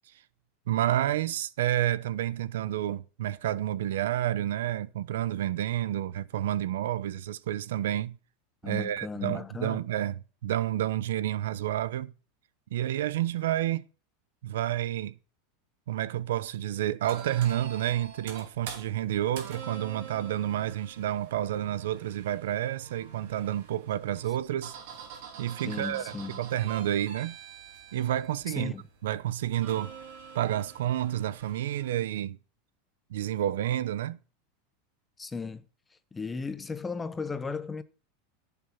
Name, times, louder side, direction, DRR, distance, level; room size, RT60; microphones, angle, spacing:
voice 1, 0.7-8.2 8.6-12.1 12.7-13.8 14.4-15.2 15.9-24.8 25.4-27.4 27.9-28.8 29.0-29.9 30.3-32.4 33.1-34.2, right 12 dB, 85° right, 0.8 m, -30 dB
voice 2, 8.6-9.8 25.6-26.4 28.5-28.8 35.2-35.6 36.1-37.8, left 4 dB, 10° left, 0.9 m, -35 dB
sound 1, 17.0-31.9, right 7 dB, 65° right, 3.9 m, -46 dB
14.5 x 7.1 x 5.7 m
supercardioid pair, 160°, 0 cm